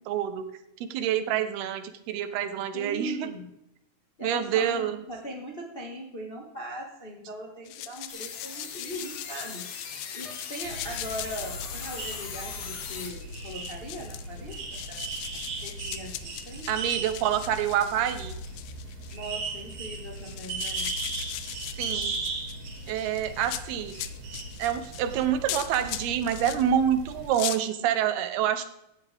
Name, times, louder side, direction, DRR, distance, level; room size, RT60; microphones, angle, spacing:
voice 1, 0.1-0.5 0.8-3.3 4.2-5.0 16.7-18.4 21.5-22.2 22.9-24.0 24.6-28.6, right 9 dB, 85° right, 10 dB, 3.0 m, -27 dB
voice 2, 2.7-3.5 4.2-9.7 10.1-15.0 15.3-16.7 19.1-20.9, equal, 35° left, -1 dB, 0.9 m, -40 dB
sound 1, 7.7-26.6 27.1-27.6, left 14 dB, 80° left, 2.4 m, -40 dB
sound 2, 8.1-13.1, left 7 dB, 60° left, 2.6 m, -39 dB
sound 3, 10.6-27.3, right 3 dB, 60° right, 4.0 m, -37 dB
15.5 x 10.5 x 3.6 m, 0.84 s
omnidirectional pair, 4.5 m